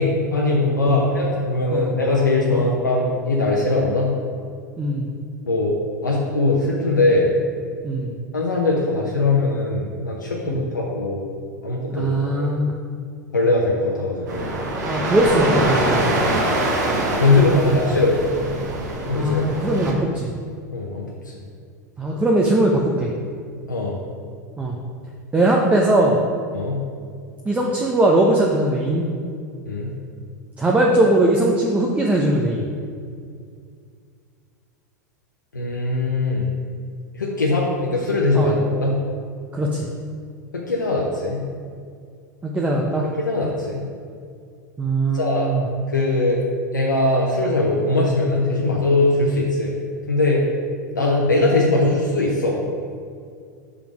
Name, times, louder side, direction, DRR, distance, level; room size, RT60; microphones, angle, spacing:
voice 1, 0.0-4.1 5.4-5.8 6.0-7.3 8.3-11.3 11.6-12.6 13.3-14.5 16.2-16.4 17.2-18.2 19.1-19.4 20.7-21.3 23.7-24.0 26.5-26.8 29.6-29.9 35.5-36.5 37.1-39.0 40.5-41.4 43.2-43.8 45.1-45.5 45.9-46.4 46.7-49.7 50.1-50.4 50.9-52.6, left 2 dB, 85° left, -3 dB, 0.8 m, -21 dB
voice 2, 4.8-5.1 7.8-8.1 10.5-10.7 11.9-12.7 14.8-16.0 17.4-17.9 19.1-20.3 22.0-23.1 24.6-24.7 25.3-26.2 27.4-29.0 30.6-32.6 38.3-38.5 39.5-39.8 42.4-43.1 44.8-45.6, right 1 dB, 15° right, -2 dB, 0.7 m, -20 dB
sound 1, 14.3-19.9, right 1 dB, 65° right, 1.4 m, -24 dB
5.1 x 4.9 x 6.1 m, 2.2 s
figure-of-eight pair, 90°, 10 cm